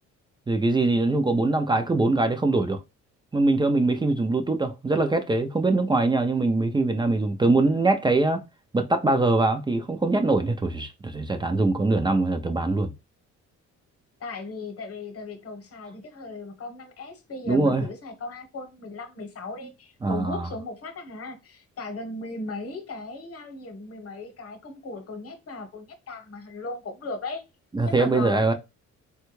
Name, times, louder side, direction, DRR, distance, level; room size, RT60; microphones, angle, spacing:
voice 1, 0.5-2.8 3.3-8.4 8.7-12.9 17.5-17.8 20.0-20.5 27.7-28.5, right 2 dB, 15° right, 0.4 m, -23 dB
voice 2, 14.2-27.4 27.8-28.5, left 3 dB, 50° left, 1.0 m, -37 dB
3.4 x 2.2 x 3.0 m
cardioid pair, 90°, 30 cm